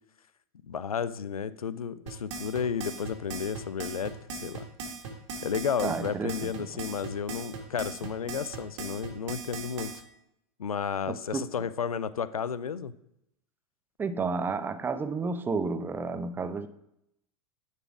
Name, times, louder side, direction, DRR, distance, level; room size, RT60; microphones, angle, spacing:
voice 1, 0.7-4.6 5.4-9.9 10.6-12.9, left 7 dB, 80° left, 0.4 m, -32 dB
sound 1, 2.1-10.0, right 4 dB, 55° right, 1.8 m, -38 dB
voice 2, 5.8-6.5 11.1-11.5 14.0-16.7, right 4 dB, 10° right, 0.4 m, -31 dB
9.7 x 4.2 x 4.7 m
figure-of-eight pair, 90°, 18 cm